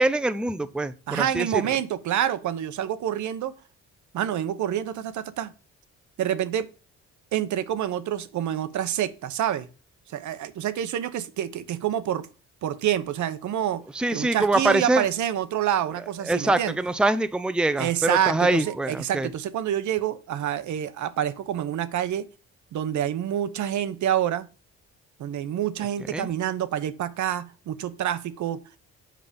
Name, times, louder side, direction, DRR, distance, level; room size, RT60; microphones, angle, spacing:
voice 1, 0.0-1.6 13.9-15.1 16.2-19.3 26.1-26.3, right 2 dB, 5° right, 12 dB, 0.5 m, -24 dB
voice 2, 1.1-3.5 4.1-5.5 6.2-6.7 7.3-9.7 10.1-12.3 12.6-13.8 14.1-16.8 17.8-22.3 22.7-24.5 25.2-28.8, right 10 dB, 75° right, 12 dB, 1.0 m, -27 dB
7.7 x 5.5 x 5.2 m, 0.34 s
cardioid pair, 90°, 30 cm